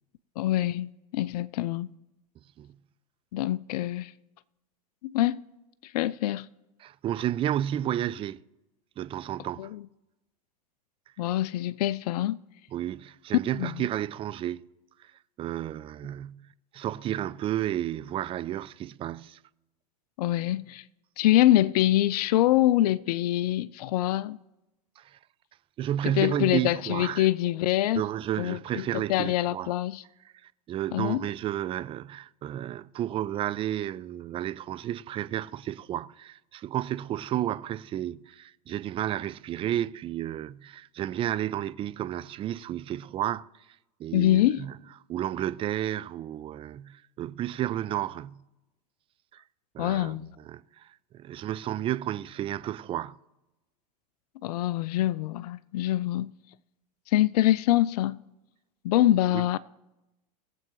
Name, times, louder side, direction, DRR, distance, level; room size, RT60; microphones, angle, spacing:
voice 1, 0.4-1.9 3.3-4.1 5.0-5.4 5.8-6.5 9.6-9.8 11.2-12.4 13.5-13.9 20.2-20.8 21.2-24.4 26.0-28.0 28.4-30.0 30.9-31.3 44.1-44.7 49.8-50.3 54.4-56.3 57.1-58.2 58.8-59.6, left 14 dB, 70° left, 0.4 m, -25 dB
voice 2, 6.8-8.4 9.0-9.7 12.7-14.6 15.0-15.1 15.4-16.5 16.7-19.4 25.0-25.2 25.8-27.3 27.9-29.7 30.4-43.4 44.0-44.7 45.1-48.4 49.3-49.4 49.7-53.2 59.3-59.5, right 12 dB, 25° right, 0.4 m, -32 dB
20.5 x 7.7 x 3.1 m
hypercardioid pair, 110°, 21 cm